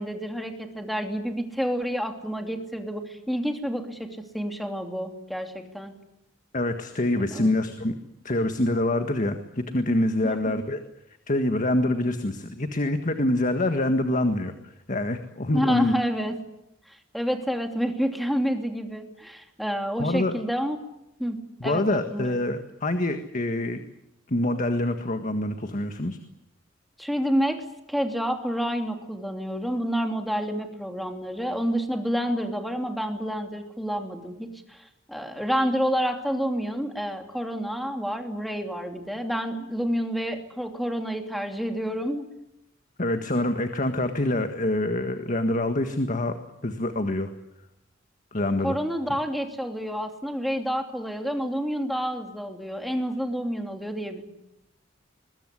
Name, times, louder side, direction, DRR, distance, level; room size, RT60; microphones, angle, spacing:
voice 1, 0.0-4.1 4.3-5.9 7.3-7.5 10.2-10.6 15.5-16.3 17.1-20.8 21.2-22.4 27.0-27.6 27.9-42.2 48.6-54.2, equal, ahead, 4 dB, 2.9 m, -29 dB
voice 2, 6.5-7.9 8.2-10.8 11.3-14.5 14.9-15.9 20.0-20.4 21.6-23.8 24.3-26.2 43.0-46.3 46.6-47.3 48.3-48.8, left 1 dB, 45° left, 7 dB, 1.7 m, -25 dB
23.0 x 21.5 x 9.9 m, 0.86 s
head